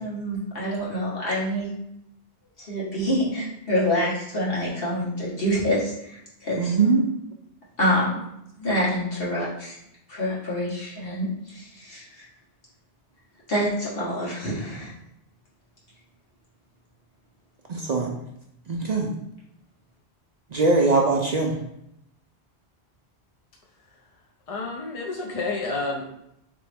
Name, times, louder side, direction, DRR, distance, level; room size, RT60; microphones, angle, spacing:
voice 1, 0.0-1.7 2.7-6.7 7.8-8.1 8.6-9.7 10.1-11.3 11.5-12.2 13.5-14.9, equal, 65° left, -7 dB, 1.8 m, -26 dB
voice 2, 6.6-7.1 17.7-18.1 18.7-19.1 20.5-21.6, right 3 dB, 50° right, 0 dB, 0.5 m, -21 dB
voice 3, 24.5-26.1, left 3 dB, 45° left, -1 dB, 0.5 m, -29 dB
4.0 x 3.4 x 3.4 m, 0.80 s
omnidirectional pair, 1.1 m